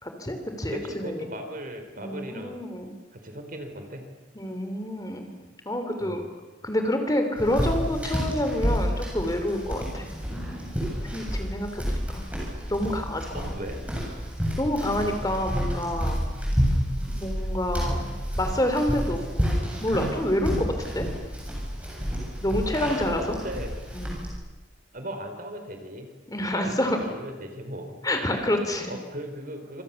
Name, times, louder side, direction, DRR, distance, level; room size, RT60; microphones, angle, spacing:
voice 1, 0.0-1.3 2.0-2.9 4.3-5.3 5.7-6.2 6.6-10.1 11.1-12.0 12.7-13.4 14.6-16.2 17.1-21.1 22.4-23.2 23.9-24.2 26.3-27.0 28.0-28.9, left 1 dB, 20° left, 6 dB, 3.0 m, -28 dB
voice 2, 0.7-2.6 3.1-4.1 6.0-6.3 13.3-13.8 23.1-23.7 24.9-26.1 26.5-27.9 28.9-29.8, right 1 dB, 45° right, 5 dB, 4.2 m, -37 dB
sound 1, 7.4-24.3, equal, 5° right, 7.7 m, -30 dB
27.0 x 27.0 x 7.1 m, 1.2 s
head